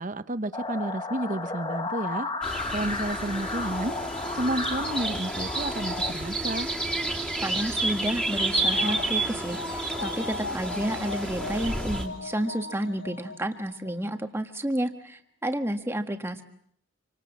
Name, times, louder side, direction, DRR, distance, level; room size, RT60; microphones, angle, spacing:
voice 1, 0.0-2.3 2.7-3.9 4.4-6.7, right 1 dB, 40° right, 12 dB, 1.0 m, -31 dB
sound 1, 0.5-6.1, left 3 dB, 25° left, 1.3 m, -33 dB
sound 2, 2.4-12.0, right 2 dB, 5° left, 2.6 m, -30 dB
voice 2, 7.4-16.4, right 1 dB, 10° right, 6 dB, 1.5 m, -31 dB
sound 3, 7.5-14.2 14.5-14.6, left 3 dB, 65° left, 1.5 m, -39 dB
27.0 x 26.0 x 7.2 m, 0.67 s
head